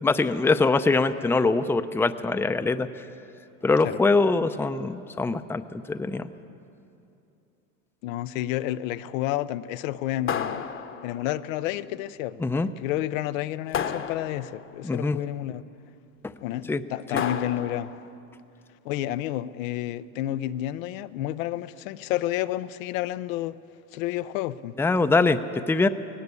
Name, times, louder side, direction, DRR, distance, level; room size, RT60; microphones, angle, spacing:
voice 1, 0.0-2.9 3.6-6.3 12.4-12.7 14.8-15.2 16.7-16.8 17.1-17.2 24.8-25.9, left 3 dB, 5° left, 0.6 m, -23 dB
voice 2, 8.0-10.6 11.0-12.5 12.8-15.6 16.4-17.9 18.8-23.6 23.9-24.8, left 14 dB, 80° left, 0.7 m, -30 dB
sound 1, 10.3-11.3 13.7-14.7 17.2-18.0, left 7 dB, 30° left, 1.0 m, -31 dB
18.5 x 17.5 x 8.3 m
supercardioid pair, 105°, 39 cm